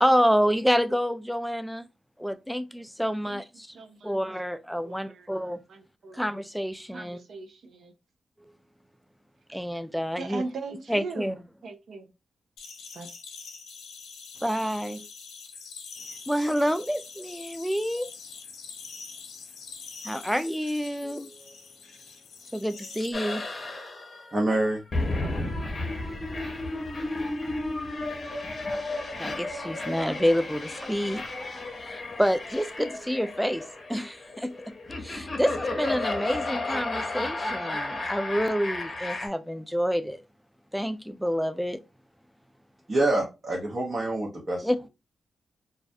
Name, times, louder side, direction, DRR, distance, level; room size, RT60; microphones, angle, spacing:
voice 1, 0.0-1.9 2.2-3.7 4.0-5.6 6.1-7.2 9.5-10.4 10.9-11.3 14.4-15.1 16.3-18.1 20.0-21.5 22.5-23.4 29.2-33.6 33.9-40.2 40.7-41.8 44.6-44.9, equal, ahead, 0.3 m, -28 dB
voice 2, 3.7-4.2 4.8-6.2 6.9-7.9 9.5-9.6 10.2-11.4 11.6-12.1 12.9-13.1, right 3 dB, 65° right, 0.4 m, -39 dB
sound 1, 12.6-23.1, left 5 dB, 80° left, 0.4 m, -44 dB
sound 2, 23.1-39.3, left 2 dB, 45° left, 0.7 m, -33 dB
voice 3, 24.3-24.8 42.9-44.7, right 2 dB, 40° right, 0.8 m, -26 dB
2.3 x 2.0 x 2.6 m
supercardioid pair, 40°, 0 cm